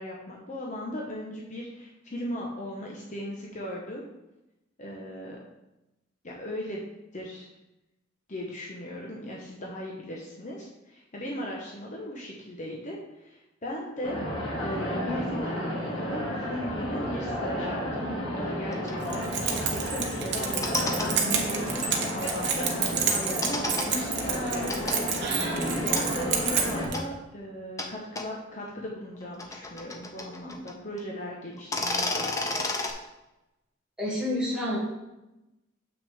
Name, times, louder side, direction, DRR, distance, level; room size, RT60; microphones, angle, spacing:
voice 1, 0.0-4.0 4.8-5.4 6.2-6.8 7.1-7.5 8.3-14.2 14.6-24.9 25.3-32.7, equal, 40° left, -2 dB, 1.0 m, -38 dB
sound 1, 14.0-26.9, equal, 80° left, 2.3 m, -32 dB
sound 2, 18.7-18.9 20.4-21.1 23.4-23.9 24.7-25.0 26.0-26.1 26.9-27.0 27.8-27.9 28.1-28.2 29.1-30.7 31.0-31.1 31.6-32.9, left 2 dB, 15° left, 0.7 m, -31 dB
Keys jangling, 19.0-27.0, right 6 dB, 60° right, 1.1 m, -30 dB
voice 2, 34.0-34.8, left 1 dB, 5° right, -7 dB, 2.4 m, -28 dB
7.5 x 6.1 x 3.5 m, 0.95 s
head